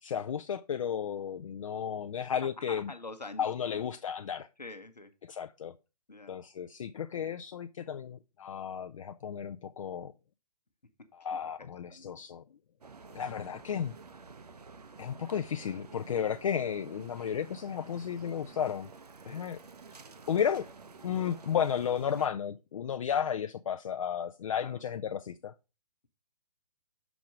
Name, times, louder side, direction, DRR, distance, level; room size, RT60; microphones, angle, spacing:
voice 1, 0.0-2.9 3.4-4.5 5.3-5.7 6.3-10.1 11.1-12.4 13.1-13.9 15.0-18.9 19.3-19.6 20.3-20.7 21.0-25.5, left 8 dB, 55° left, 0.4 m, -33 dB
voice 2, 2.6-3.8 4.6-5.1 6.1-6.4 11.3-12.2 16.6-16.7 19.2-19.5 22.2-22.3 24.6-24.8, left 2 dB, 90° left, 0.9 m, -46 dB
sound 1, 12.8-22.3, right 4 dB, 75° right, 0.8 m, -51 dB
6.1 x 4.7 x 5.1 m
figure-of-eight pair, 130°, 20 cm